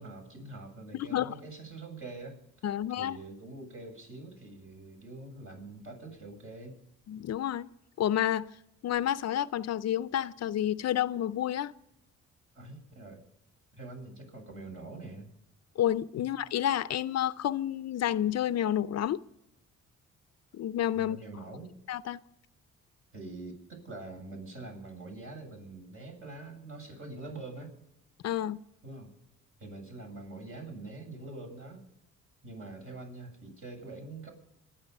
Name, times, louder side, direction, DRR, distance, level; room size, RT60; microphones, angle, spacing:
voice 1, 0.0-6.8 12.5-13.2 13.7-15.3 16.2-16.3 20.9-21.7 23.1-27.7 28.8-29.1 29.6-31.8 32.4-34.3, right 2 dB, 45° right, 3 dB, 7.8 m, -44 dB
voice 2, 0.9-1.3 2.6-3.2 7.1-7.7 8.0-8.5 8.8-11.7 15.8-19.2 20.5-21.2 21.9-22.2 28.2-28.6, left 11 dB, 60° left, 16 dB, 0.6 m, -30 dB
26.0 x 10.0 x 5.5 m, 0.86 s
cardioid pair, 90°, 30 cm